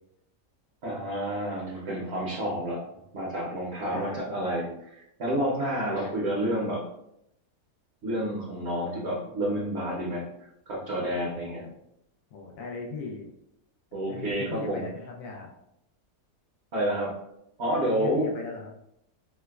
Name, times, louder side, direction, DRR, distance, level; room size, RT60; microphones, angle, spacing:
voice 1, 0.8-2.8 3.1-6.8 8.0-10.2 10.7-11.6 13.9-14.9 16.7-17.2 17.6-18.3, right 1 dB, 55° right, -4 dB, 0.9 m, -29 dB
voice 2, 3.9-4.2 5.8-6.1 11.5-11.6 12.3-13.3 14.1-15.5 17.8-18.7, left 3 dB, 70° left, 0 dB, 1.0 m, -38 dB
4.5 x 2.2 x 2.2 m, 0.80 s
omnidirectional pair, 1.5 m